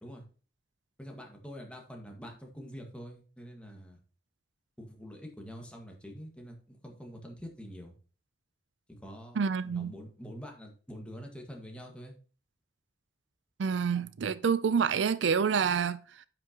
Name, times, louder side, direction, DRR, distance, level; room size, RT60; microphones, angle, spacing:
voice 1, 1.0-4.0 4.8-7.9 9.0-12.1, equal, 5° left, 1.7 m, -46 dB
voice 2, 9.4-9.9 13.6-16.3, right 6 dB, 85° right, 0.4 m, -28 dB
9.1 x 6.1 x 2.9 m
head